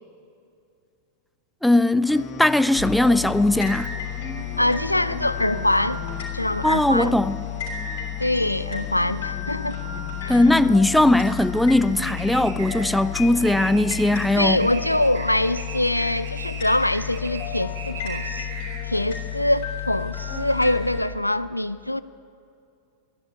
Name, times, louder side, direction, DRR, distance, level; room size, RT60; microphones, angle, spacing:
voice 1, 1.6-3.9 6.6-7.4 10.3-14.6, left 1 dB, ahead, 0.4 m, -19 dB
sound 1, 2.0-17.2, left 8 dB, 35° left, 1.0 m, -42 dB
sound 2, 2.8-21.0, left 8 dB, 55° left, 3.2 m, -32 dB
voice 2, 4.6-6.0 6.3-7.2 8.2-9.8 10.2-10.4 14.4-18.5 18.8-22.0, left 1 dB, 85° left, 0.4 m, -24 dB
sound 3, 12.0-19.1, right 6 dB, 55° right, 1.5 m, -39 dB
13.5 x 10.5 x 9.3 m
figure-of-eight pair, 90°, 0 cm